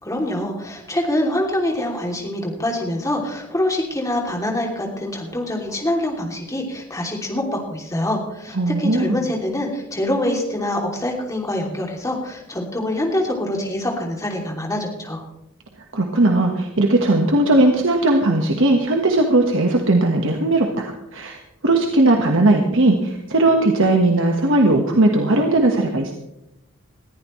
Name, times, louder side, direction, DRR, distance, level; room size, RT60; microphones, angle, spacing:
voice 1, 0.0-15.2, left 1 dB, 15° left, 0 dB, 2.8 m, -25 dB
voice 2, 8.5-9.2 15.9-21.4 21.6-26.1, right 2 dB, 60° right, 2 dB, 1.5 m, -18 dB
20.5 x 14.5 x 3.2 m, 0.86 s
head